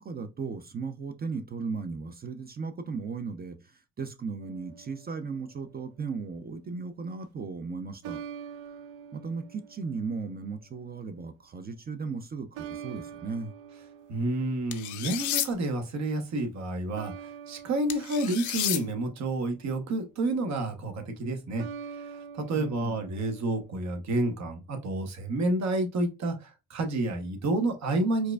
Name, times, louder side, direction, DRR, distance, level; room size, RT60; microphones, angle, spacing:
voice 1, 0.0-8.2 9.1-13.5 22.5-23.1, right 4 dB, 30° right, 0.5 m, -36 dB
sound 1, 4.4-5.7 8.0-10.5 12.5-15.1 17.0-19.5 21.6-23.9, right 8 dB, 90° right, 0.5 m, -45 dB
voice 2, 14.1-21.6 22.0-28.3, right 2 dB, 65° right, 1.0 m, -29 dB
sound 2, 14.7-15.5 17.9-18.8, left 12 dB, 75° left, 0.5 m, -31 dB
4.5 x 2.4 x 2.3 m
cardioid pair, 90°, 30 cm